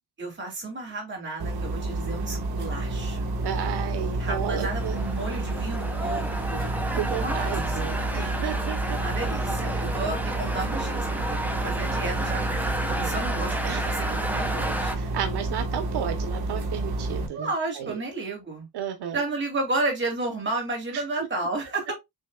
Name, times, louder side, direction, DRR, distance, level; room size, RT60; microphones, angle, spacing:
voice 1, 0.2-3.3 4.2-6.8 7.2-8.2 9.0-15.5 17.3-18.7 19.1-21.9, right 2 dB, 30° right, 2.4 m, -32 dB
sound 1, 1.4-17.3, right 2 dB, 70° right, 1.4 m, -30 dB
voice 2, 3.4-5.0 6.9-9.0 13.6-14.2 15.0-17.5 17.8-18.0 18.7-19.2 20.9-21.3, right 9 dB, 90° right, 0.9 m, -33 dB
sound 2, 4.2-15.0, right 1 dB, 5° right, 0.6 m, -32 dB
7.3 x 3.1 x 2.3 m
wide cardioid pair, 160°, 39 cm